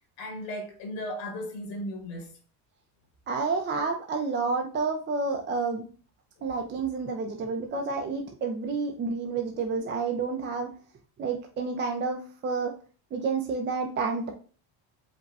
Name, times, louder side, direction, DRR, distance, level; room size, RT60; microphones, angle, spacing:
voice 1, 0.2-2.4 6.4-6.5, left 1 dB, 75° left, 1.8 m, -36 dB
voice 2, 3.3-5.8 6.4-10.7 11.2-12.8 13.1-14.3, right 4 dB, 25° right, 0.5 m, -29 dB
5.1 x 2.2 x 3.9 m
cardioid pair, 140°, 45 cm